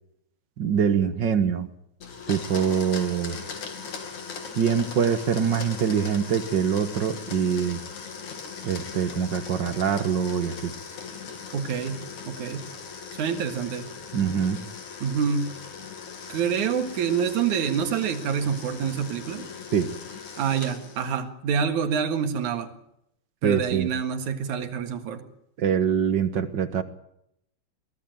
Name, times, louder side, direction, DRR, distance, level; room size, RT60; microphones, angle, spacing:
voice 1, 0.6-1.7 2.3-3.4 4.6-7.8 8.6-10.7 14.1-14.6 19.7-19.9 23.4-23.9 25.6-26.8, right 7 dB, 55° right, 11 dB, 1.3 m, -24 dB
Domestic sounds home sounds, 2.0-21.2, left 6 dB, 70° left, 4.0 m, -39 dB
voice 2, 11.5-12.7 13.2-13.9 15.0-15.5 16.3-19.5 20.4-22.7 23.4-25.2, right 7 dB, 75° right, 8 dB, 3.2 m, -27 dB
23.0 x 16.5 x 9.1 m, 0.77 s
omnidirectional pair, 3.5 m